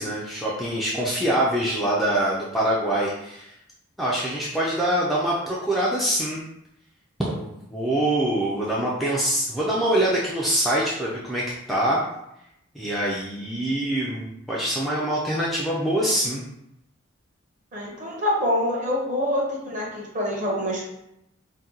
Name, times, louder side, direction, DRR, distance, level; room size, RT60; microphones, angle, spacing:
voice 1, 0.0-3.5 4.0-6.4 7.4-12.0 12.7-16.4, right 1 dB, ahead, -7 dB, 0.3 m, -24 dB
voice 2, 17.7-20.8, left 1 dB, 35° right, -3 dB, 0.8 m, -26 dB
2.7 x 2.1 x 3.7 m, 0.82 s
head